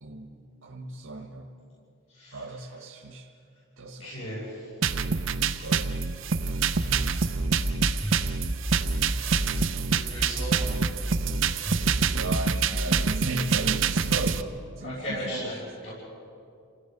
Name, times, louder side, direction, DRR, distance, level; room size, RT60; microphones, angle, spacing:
voice 1, 0.0-1.5 2.3-3.3 3.8-4.4 5.6-6.1 6.8-7.0 8.8-9.2 12.1-15.5, right 2 dB, 80° right, 0 dB, 1.6 m, -36 dB
voice 2, 2.1-2.4 4.0-4.7 9.9-10.7 14.8-15.9, equal, 65° left, -8 dB, 6.7 m, -36 dB
sound 1, 4.8-14.4, right 5 dB, 65° right, 0.6 m, -26 dB
sound 2, 6.7-9.8 10.2-13.2, right 1 dB, ahead, 0.5 m, -32 dB
28.5 x 17.0 x 5.4 m, 2.5 s
head